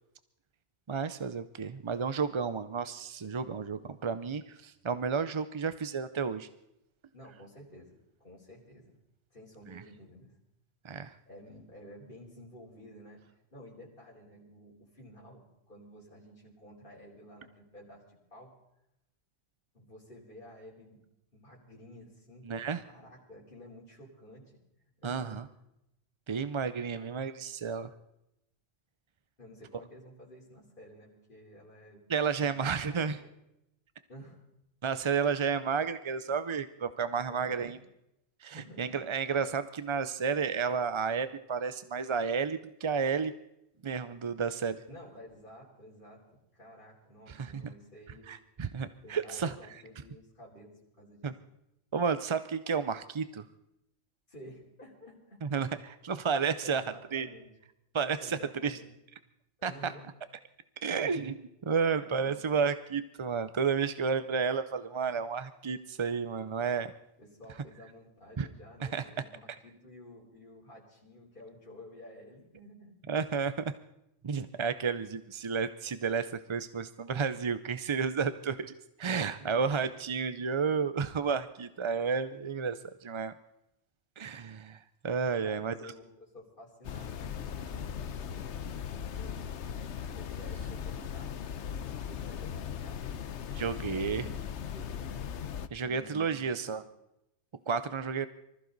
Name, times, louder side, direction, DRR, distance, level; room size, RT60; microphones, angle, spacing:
voice 1, 0.9-6.5 9.7-9.8 10.8-11.1 22.5-22.8 25.0-25.5 26.3-27.9 32.1-33.2 34.8-37.8 38.4-43.3 43.8-44.8 47.3-47.6 48.3-49.6 51.2-51.3 51.9-53.4 55.4-56.8 57.1-57.3 57.9-58.8 59.6-59.9 60.8-66.9 68.4-68.5 68.8-69.0 73.1-73.7 74.2-78.7 79.0-83.3 84.2-85.9 93.6-94.3 95.7-96.8 97.7-98.3, right 5 dB, 40° right, 12 dB, 0.4 m, -32 dB
voice 2, 7.1-9.0 9.3-10.3 11.3-13.2 13.5-18.5 19.7-21.0 21.3-24.6 25.0-25.4 29.4-33.2 34.1-34.4 37.3-37.8 38.5-38.9 44.9-48.3 49.0-51.3 54.3-55.4 56.6-57.5 58.2-58.9 59.6-60.1 61.9-62.5 67.2-73.0 79.4-79.6 85.4-88.5 88.9-89.5 90.1-93.2 93.9-94.3 94.7-95.2 95.8-96.2 96.7-96.8, equal, 45° left, -5 dB, 4.0 m, -52 dB
sound 1, 86.8-95.7, left 8 dB, 80° left, 1.1 m, -38 dB
25.0 x 14.5 x 4.0 m, 0.83 s
omnidirectional pair, 1.2 m